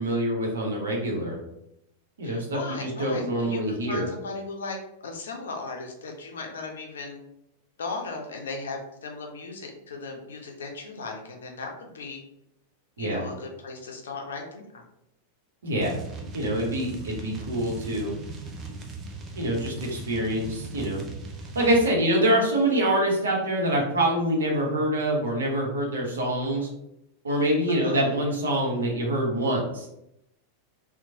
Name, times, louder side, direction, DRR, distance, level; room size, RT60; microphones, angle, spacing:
voice 1, 0.0-1.4 2.2-4.1 13.0-13.2 15.6-15.9 16.3-18.1 19.3-21.0 21.5-26.7 27.2-29.9, right 1 dB, 70° right, -1 dB, 0.8 m, -25 dB
voice 2, 2.2-4.8 5.0-7.2 7.8-12.2 13.0-14.8 16.8-17.2 27.7-28.1, left 3 dB, 65° left, 2 dB, 0.5 m, -37 dB
sound 1, 15.8-21.9, right 3 dB, 25° right, 0.4 m, -39 dB
2.9 x 2.1 x 2.6 m, 0.82 s
figure-of-eight pair, 90°, 0 cm